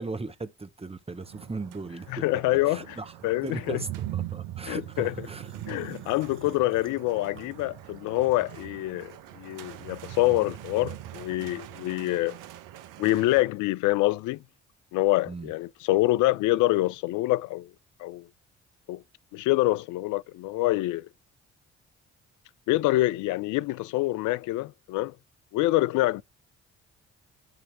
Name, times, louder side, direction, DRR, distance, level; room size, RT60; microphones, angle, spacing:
voice 1, 0.0-5.5 15.3-15.5, right 3 dB, 15° right, 1.2 m, -38 dB
sound 1, 1.1-13.4, right 13 dB, 65° right, 0.8 m, -41 dB
voice 2, 2.2-2.8 3.2-3.8 4.7-5.1 5.7-12.4 13.0-14.4 14.9-17.7 18.0-18.3 18.9-19.0 19.3-21.1 22.7-25.1 25.5-26.2, left 18 dB, 60° left, 0.5 m, -26 dB
sound 2, 4.6-8.2 8.6-10.1, right 4 dB, 35° right, 2.0 m, -54 dB
9.2 x 3.2 x 6.2 m
hypercardioid pair, 45°, 34 cm